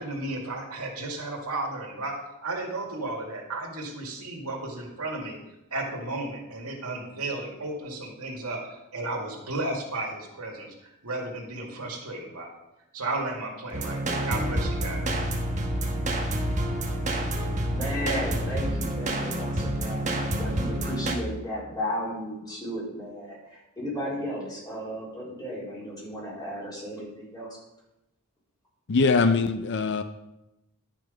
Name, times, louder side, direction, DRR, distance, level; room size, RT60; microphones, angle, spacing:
voice 1, 0.0-2.1 2.4-5.4 5.7-10.7 11.0-12.6 12.9-15.1, right 2 dB, 85° right, 0 dB, 2.2 m, -33 dB
sound 1, 13.7-21.2, right 1 dB, 35° right, 1.3 m, -28 dB
voice 2, 17.6-27.6, equal, 20° left, -6 dB, 3.9 m, -34 dB
voice 3, 28.9-30.0, left 4 dB, 55° left, 9 dB, 0.5 m, -22 dB
11.0 x 6.1 x 5.2 m, 0.93 s
head